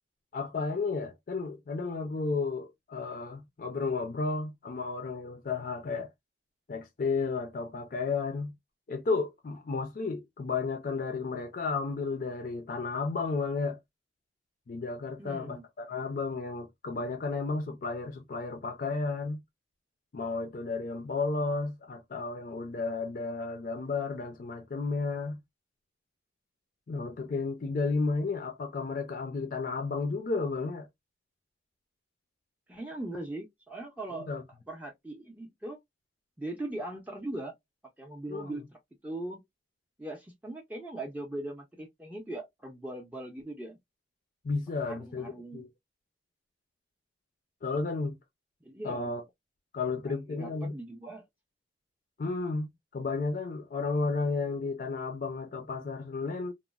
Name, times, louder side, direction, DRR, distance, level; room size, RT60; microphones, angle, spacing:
voice 1, 0.3-6.1 6.7-8.5 8.9-13.8 14.7-19.4 20.1-25.4 26.9-30.9 34.1-34.4 38.3-38.5 44.4-45.7 47.6-48.2 48.8-49.2 49.7-50.7 52.2-56.5, left 4 dB, 50° left, 0.4 m, -33 dB
voice 2, 15.2-15.6 32.7-35.8 36.4-37.5 38.0-39.4 40.0-43.8 44.9-45.7 48.6-49.1 50.0-51.3, right 1 dB, 10° right, 0.4 m, -40 dB
2.9 x 2.0 x 2.2 m
head